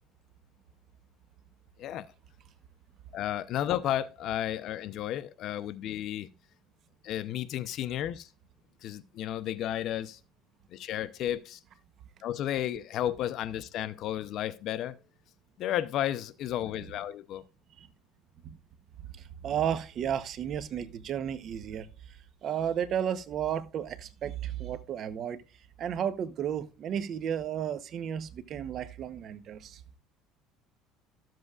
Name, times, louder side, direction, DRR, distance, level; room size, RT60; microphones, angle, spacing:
voice 1, 3.1-6.3 7.0-8.3 8.8-10.2 10.7-11.6 12.2-15.0 15.6-17.4, left 11 dB, 60° left, 0.7 m, -33 dB
voice 2, 19.1-25.4 25.8-29.8, right 9 dB, 50° right, 0.9 m, -33 dB
13.5 x 7.6 x 2.4 m
supercardioid pair, 110°, 0 cm